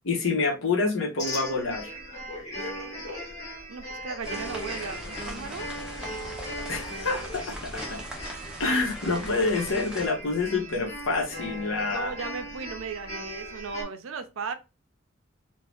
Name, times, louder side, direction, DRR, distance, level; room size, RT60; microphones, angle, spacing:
voice 1, 0.0-2.0 6.7-8.0 8.6-12.1, left 3 dB, 75° left, 0.8 m, -27 dB
sound 1, 1.2-13.8, equal, 35° left, 1.2 m, -38 dB
voice 2, 3.7-5.7 11.9-14.5, right 5 dB, 80° right, 0.5 m, -36 dB
sound 2, 4.2-10.1, right 1 dB, 5° right, 0.4 m, -40 dB
2.6 x 2.1 x 3.3 m
head